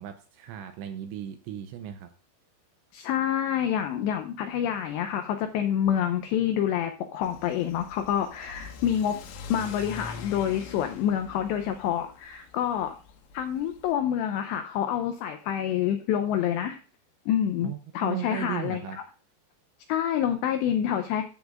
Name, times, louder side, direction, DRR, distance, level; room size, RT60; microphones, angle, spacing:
voice 1, 0.0-2.1 17.6-19.0, right 10 dB, 85° right, 7 dB, 2.7 m, -36 dB
voice 2, 2.9-9.2 9.5-12.9 13.3-16.8 17.3-18.8 19.9-21.2, left 9 dB, 85° left, 7 dB, 2.4 m, -27 dB
Car / Accelerating revving vroom, 7.2-13.9, left 4 dB, 70° left, 3.1 m, -44 dB
14.0 x 8.0 x 2.4 m, 0.38 s
omnidirectional pair, 5.8 m